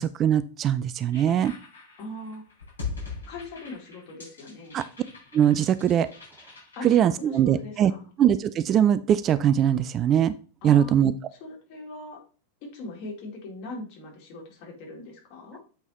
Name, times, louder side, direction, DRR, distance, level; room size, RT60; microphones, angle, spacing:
voice 1, 0.0-1.5 4.7-4.8 5.3-6.1 6.8-7.9 8.2-10.3 10.6-11.1, right 10 dB, 30° right, 14 dB, 0.4 m, -21 dB
sound 1, 1.1-6.9, left 4 dB, 75° left, 4.1 m, -41 dB
voice 2, 2.0-2.4 3.3-4.8 6.7-8.1 10.6-10.9 11.3-12.2 12.6-15.6, left 2 dB, 45° left, 0 dB, 2.7 m, -40 dB
8.0 x 5.4 x 3.0 m, 0.38 s
figure-of-eight pair, 90°, 0 cm